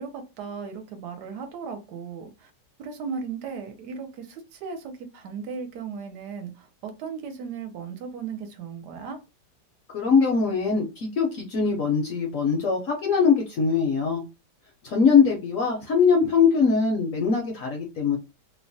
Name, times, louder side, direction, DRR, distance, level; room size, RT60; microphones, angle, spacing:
voice 1, 0.0-2.5 2.8-9.2, right 5 dB, 75° right, 1.1 m, -36 dB
voice 2, 9.9-14.2 14.8-18.2, left 5 dB, 65° left, 0.8 m, -22 dB
3.0 x 2.1 x 2.6 m
omnidirectional pair, 1.9 m